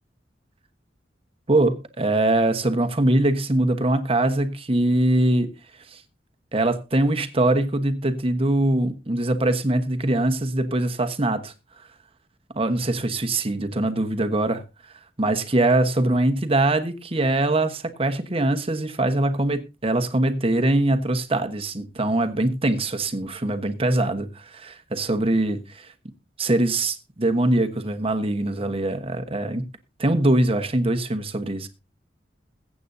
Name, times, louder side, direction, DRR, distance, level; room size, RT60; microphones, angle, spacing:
voice 1, 1.5-5.5 5.9-6.0 6.5-11.5 12.5-14.6 15.2-25.9 26.4-29.6 30.0-31.7, right 1 dB, 30° right, 1.2 m, -22 dB
21.5 x 8.5 x 2.7 m
head